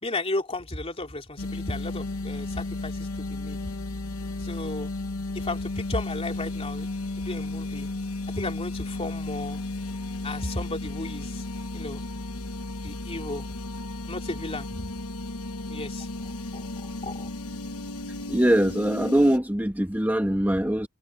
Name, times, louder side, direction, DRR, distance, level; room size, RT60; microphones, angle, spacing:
voice 1, 0.0-3.6 4.4-4.9 5.3-6.9 7.2-7.9 8.3-9.6 10.2-11.4 11.7-12.0 12.8-13.5 14.1-14.7 15.7-16.1 16.5-16.6 17.0-17.3, left 2 dB, 25° left, 3.2 m, -34 dB
sound 1, 1.4-19.4, left 2 dB, 70° left, 1.2 m, -34 dB
voice 2, 18.3-20.9, equal, 10° right, 1.9 m, -22 dB
head